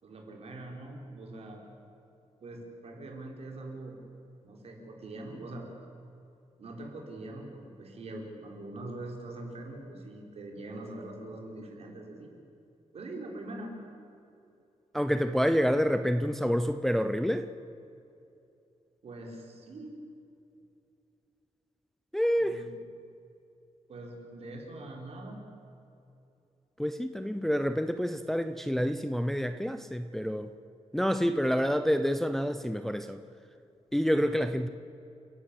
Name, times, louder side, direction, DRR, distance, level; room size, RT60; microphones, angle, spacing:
voice 1, 0.0-1.6 2.4-4.0 4.4-5.7 6.6-12.3 12.9-13.8 19.0-20.0 22.4-22.8 23.9-25.4, right 2 dB, 60° right, 0 dB, 4.1 m, -43 dB
voice 2, 14.9-17.5 22.1-22.6 26.8-30.5 30.9-33.2 33.9-34.7, equal, 5° left, 8 dB, 0.5 m, -28 dB
29.5 x 12.0 x 8.4 m, 2.7 s
wide cardioid pair, 155°, 12 cm